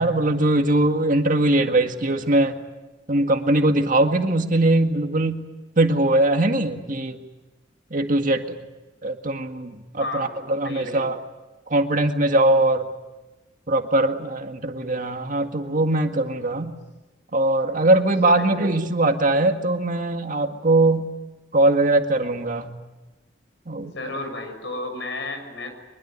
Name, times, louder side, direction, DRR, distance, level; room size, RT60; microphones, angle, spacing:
voice 1, 0.0-2.6 3.1-5.4 5.8-7.2 7.9-8.6 9.0-11.2 11.7-12.9 13.7-16.7 17.3-21.1 21.5-22.7 23.7-23.9, right 2 dB, 45° right, 5 dB, 1.9 m, -21 dB
voice 2, 10.0-11.1 18.3-18.7 23.8-25.7, left 2 dB, 75° left, 6 dB, 6.5 m, -33 dB
24.0 x 22.0 x 9.6 m, 1.1 s
head